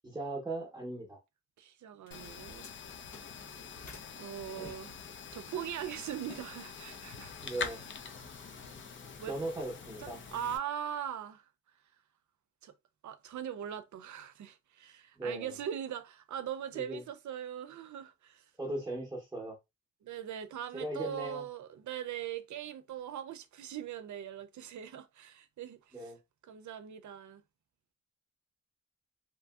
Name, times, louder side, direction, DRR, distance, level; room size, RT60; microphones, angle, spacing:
voice 1, 0.0-1.2 4.6-4.8 7.4-7.9 9.2-10.2 15.2-15.6 16.7-17.0 18.6-19.6 20.7-21.4 25.9-26.2, right 1 dB, 10° right, 0.7 m, -38 dB
voice 2, 1.6-2.6 4.2-4.9 5.3-7.3 9.2-9.4 10.0-11.4 12.6-12.7 13.0-18.4 20.0-26.1 26.5-27.4, right 9 dB, 70° right, 0.5 m, -41 dB
sound 1, 2.0-4.1 4.6-6.5 6.8-7.1 7.4-8.1, left 4 dB, 75° left, 1.1 m, -54 dB
sound 2, 2.1-10.6, left 6 dB, 40° left, 0.5 m, -45 dB
2.8 x 2.6 x 2.3 m
wide cardioid pair, 115°, 30 cm